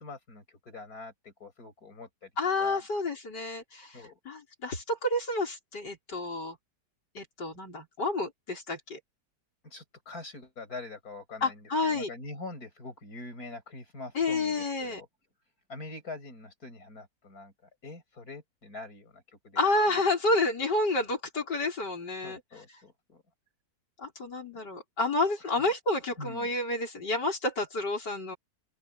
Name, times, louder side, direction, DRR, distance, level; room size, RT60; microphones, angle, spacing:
voice 1, 0.0-2.3 2.6-2.8 3.9-4.2 9.6-15.1 15.7-17.5 17.8-19.6 19.9-20.0 22.2-23.2 24.5-24.6 25.4-25.7 26.2-26.5, left 2 dB, 60° left, 7.1 m, -44 dB
voice 2, 2.4-6.6 7.2-9.0 11.4-12.1 14.1-15.0 19.6-22.4 24.0-28.4, left 2 dB, 90° left, 5.7 m, -30 dB
open air
omnidirectional pair, 1.8 m